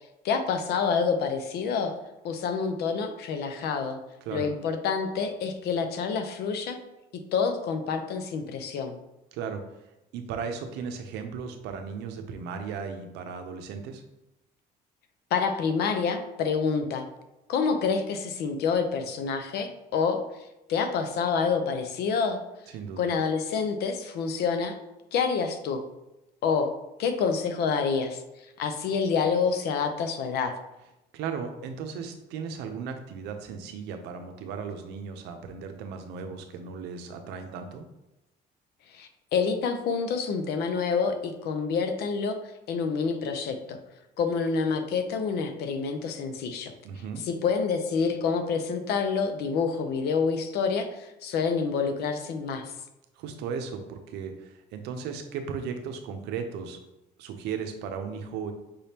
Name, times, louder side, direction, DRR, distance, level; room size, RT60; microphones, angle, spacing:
voice 1, 0.2-2.0 2.2-4.0 4.3-6.8 7.3-9.0 15.3-17.1 17.5-20.2 20.7-22.4 23.0-24.8 25.1-25.8 26.4-28.2 28.6-30.5 38.9-42.4 42.7-43.8 44.2-46.7 47.3-52.7, left 5 dB, 70° left, 7 dB, 0.6 m, -27 dB
voice 2, 9.3-9.6 10.1-14.0 22.7-23.1 31.1-37.9 46.8-47.3 53.2-56.8 57.2-58.5, right 6 dB, 90° right, 6 dB, 0.6 m, -36 dB
5.3 x 3.4 x 2.8 m, 0.94 s
cardioid pair, 110°, 17 cm